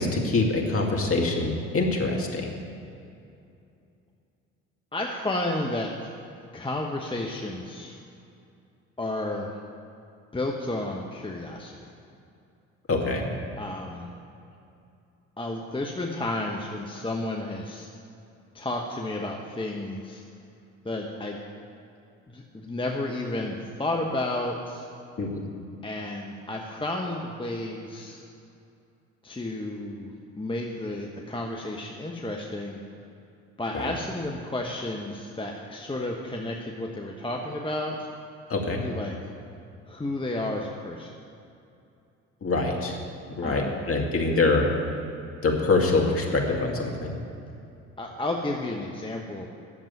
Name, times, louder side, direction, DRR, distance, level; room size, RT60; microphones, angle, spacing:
voice 1, 0.0-2.5 12.9-13.3 25.2-25.4 33.7-33.9 38.5-38.8 42.4-43.0 43.4-44.6 45.4-47.2, left 3 dB, 35° left, 1 dB, 2.3 m, -25 dB
voice 2, 4.9-6.2 6.5-8.0 9.0-9.6 10.3-11.8 13.6-14.1 15.4-17.9 18.5-20.2 20.8-21.4 22.3-24.9 25.8-28.2 29.2-32.8 33.6-38.1 38.8-39.2 39.9-41.2 43.4-43.8 48.0-49.5, left 2 dB, 15° left, 1 dB, 1.1 m, -32 dB
9.7 x 7.5 x 9.4 m, 2.6 s
hypercardioid pair, 55°, 37 cm